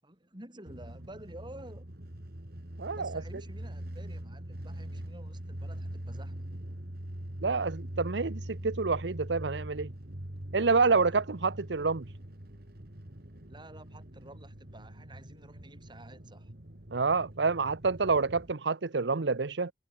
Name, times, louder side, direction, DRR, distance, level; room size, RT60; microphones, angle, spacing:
voice 1, 0.0-1.9 2.9-6.4 13.5-16.5, right 1 dB, 25° right, 5.8 m, -50 dB
sound 1, 0.7-18.5, right 1 dB, 60° right, 2.7 m, -43 dB
voice 2, 2.8-3.2 7.4-9.9 10.5-12.0 16.9-19.7, right 4 dB, 90° right, 0.8 m, -28 dB
head